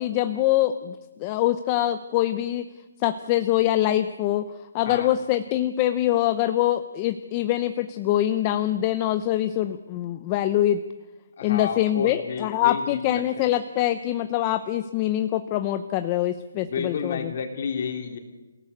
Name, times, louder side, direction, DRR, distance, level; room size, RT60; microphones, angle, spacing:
voice 1, 0.0-2.6 3.0-4.5 4.7-10.8 11.4-17.3, left 13 dB, 20° left, 10 dB, 0.7 m, -24 dB
voice 2, 11.4-13.2 16.6-18.2, left 6 dB, 40° left, 5 dB, 3.3 m, -31 dB
28.0 x 17.0 x 8.5 m, 1.2 s
hypercardioid pair, 175°, 0 cm